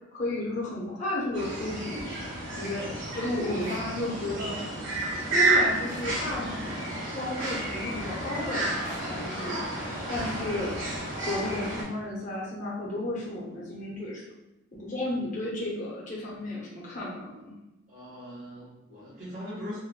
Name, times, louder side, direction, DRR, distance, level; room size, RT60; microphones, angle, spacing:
voice 1, 0.1-2.1 2.6-4.6 5.3-9.6 10.1-10.7 11.2-14.2 14.7-17.5, left 1 dB, 40° left, -6 dB, 0.7 m, -33 dB
sound 1, 1.3-11.8, right 2 dB, 75° right, 1.4 m, -31 dB
sound 2, 3.5-3.8 5.8-6.1 7.4-7.8 8.8-9.2 10.6-10.7, right 1 dB, 20° right, 0.8 m, -45 dB
voice 2, 17.9-19.8, equal, 35° right, -11 dB, 1.4 m, -40 dB
3.6 x 2.1 x 2.2 m, 0.96 s
head